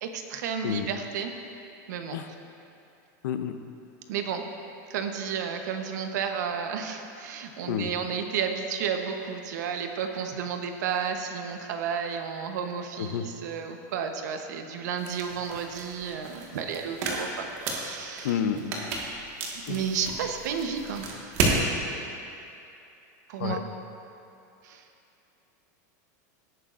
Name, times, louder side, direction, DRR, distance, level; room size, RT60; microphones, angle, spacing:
voice 1, 0.0-1.3 1.9-2.2 4.1-4.4 4.9-18.4 19.5-21.3 23.3-23.6 24.6-24.8, right 7 dB, 75° right, 5 dB, 1.0 m, -32 dB
voice 2, 3.2-3.6 7.7-7.9 13.0-13.2 18.2-18.9 19.7-19.8 23.4-23.6, left 8 dB, 80° left, 8 dB, 0.7 m, -29 dB
sound 1, 15.0-21.6, right 3 dB, 50° right, 1.7 m, -32 dB
17.5 x 9.0 x 2.6 m, 2.7 s
supercardioid pair, 170°, 10 cm